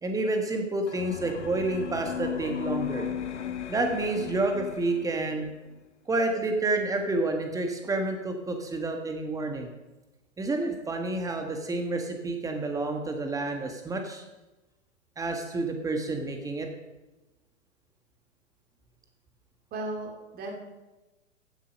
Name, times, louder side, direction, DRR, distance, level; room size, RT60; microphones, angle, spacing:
voice 1, 0.0-3.1 3.7-5.5 6.1-9.7 10.4-14.2 15.2-16.7, right 2 dB, 10° right, 4 dB, 1.6 m, -29 dB
sound 1, 0.9-5.5, left 9 dB, 65° left, 1.3 m, -36 dB
voice 2, 19.7-20.6, right 2 dB, 25° right, 2 dB, 2.6 m, -35 dB
15.5 x 7.4 x 5.3 m, 1.1 s
figure-of-eight pair, 115°, 38 cm